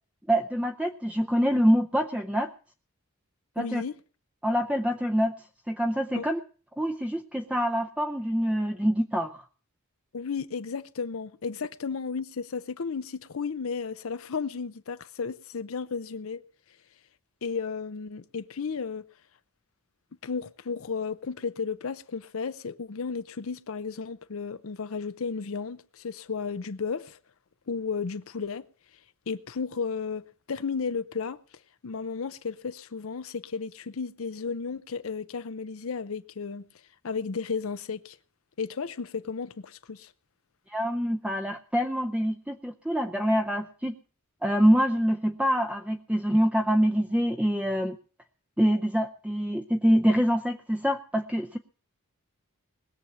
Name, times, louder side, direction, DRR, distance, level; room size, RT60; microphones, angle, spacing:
voice 1, 0.3-2.5 3.6-3.8 4.4-5.3 5.7-6.4 6.8-9.4 40.7-43.9 44.4-48.0 48.6-51.6, equal, 5° right, 0.6 m, -25 dB
voice 2, 3.6-3.9 6.1-6.3 10.1-16.4 17.4-19.1 20.2-27.2 27.7-28.6 29.3-31.4 31.8-36.6 37.0-38.2 38.6-40.1, left 5 dB, 70° left, 0.6 m, -33 dB
20.0 x 7.1 x 7.2 m
head